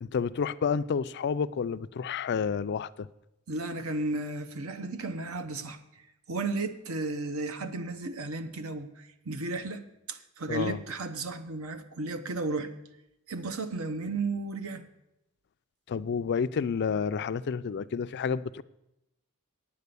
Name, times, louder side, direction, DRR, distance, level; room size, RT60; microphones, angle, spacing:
voice 1, 0.0-3.1 10.5-10.8 15.9-18.6, left 6 dB, 50° left, 0.4 m, -30 dB
voice 2, 3.5-5.8 6.3-9.8 10.1-12.7 13.3-14.9, right 3 dB, 70° right, 0.9 m, -34 dB
9.4 x 8.6 x 6.8 m
head